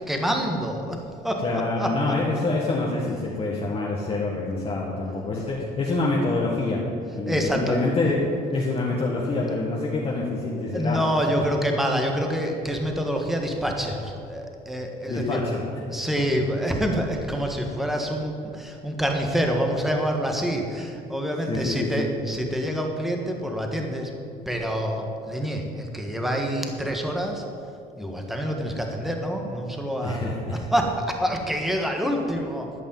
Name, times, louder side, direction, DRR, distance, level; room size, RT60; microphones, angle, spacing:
voice 1, 0.0-2.4 7.3-7.9 10.7-15.4 15.9-24.1 24.4-27.4 28.0-32.7, equal, ahead, 2 dB, 1.5 m, -27 dB
voice 2, 1.4-6.9 7.1-8.2 8.5-11.0 15.1-15.7 21.5-22.0 30.0-30.6 32.0-32.2, left 2 dB, 35° left, -4 dB, 1.7 m, -26 dB
12.5 x 5.4 x 9.1 m, 2.5 s
cardioid pair, 110°, 17 cm